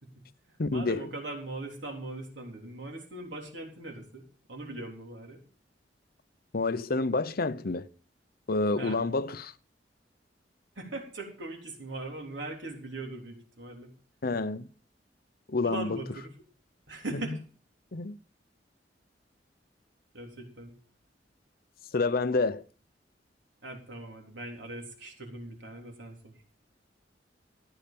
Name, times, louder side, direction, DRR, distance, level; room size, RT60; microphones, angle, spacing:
voice 1, 0.0-5.4 8.7-9.1 10.8-13.9 15.6-16.3 16.9-17.4 20.1-20.7 23.6-26.3, right 2 dB, 90° right, 3.8 m, -40 dB
voice 2, 0.6-1.1 6.5-7.9 8.5-9.5 14.2-14.7 15.5-16.0 17.9-18.2 21.9-22.6, left 3 dB, 55° left, 0.8 m, -28 dB
15.0 x 8.9 x 5.3 m
head